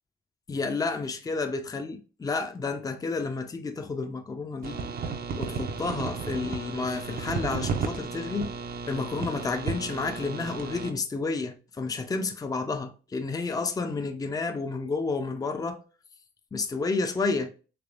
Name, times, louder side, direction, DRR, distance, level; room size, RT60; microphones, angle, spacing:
voice 1, 0.5-4.8 5.4-8.5 8.9-15.8 16.5-17.5, left 4 dB, 20° left, 0.5 m, -30 dB
sound 1, 4.6-10.9, right 5 dB, 50° right, 0.6 m, -33 dB
3.4 x 3.3 x 2.4 m
cardioid pair, 90°, 20 cm